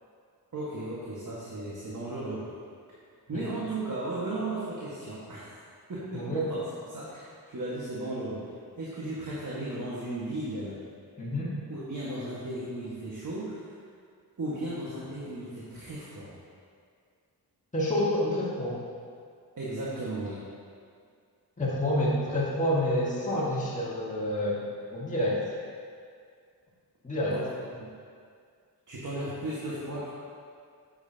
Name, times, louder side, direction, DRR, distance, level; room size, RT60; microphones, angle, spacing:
voice 1, 0.5-2.5 3.3-5.6 5.9-6.6 6.9-10.8 11.7-13.7 14.4-16.3 19.6-20.4 27.2-27.5 27.8-27.9 28.9-30.1, right 2 dB, 50° right, -7 dB, 1.6 m, -35 dB
voice 2, 6.1-6.5 11.2-11.5 17.7-18.8 21.6-24.7 24.9-25.4 27.0-27.4, left 1 dB, 20° left, -7 dB, 1.8 m, -28 dB
8.8 x 7.8 x 2.8 m, 2.2 s
cardioid pair, 80°, 40 cm